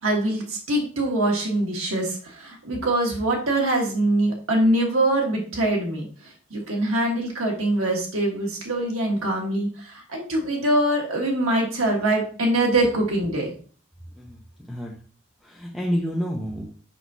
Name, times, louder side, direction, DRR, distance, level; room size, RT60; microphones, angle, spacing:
voice 1, 0.0-6.1 6.5-13.5, right 1 dB, 75° right, 0 dB, 1.5 m, -23 dB
voice 2, 15.4-16.7, equal, ahead, -3 dB, 0.7 m, -28 dB
6.1 x 5.7 x 2.7 m, 0.41 s
head